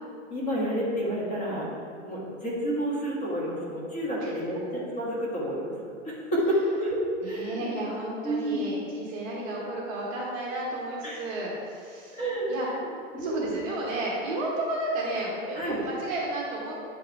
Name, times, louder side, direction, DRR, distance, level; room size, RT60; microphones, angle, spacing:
voice 1, 0.3-1.7 2.0-5.7 6.0-7.6 8.2-8.6 11.0-11.3 12.1-12.5 13.1-13.5 15.5-15.8, equal, 20° left, -6 dB, 1.6 m, -29 dB
voice 2, 4.2-4.6 7.2-12.2 12.5-12.7 13.2-16.7, right 2 dB, 25° right, -4 dB, 1.2 m, -32 dB
8.6 x 4.8 x 4.7 m, 2.4 s
hypercardioid pair, 165°, 39 cm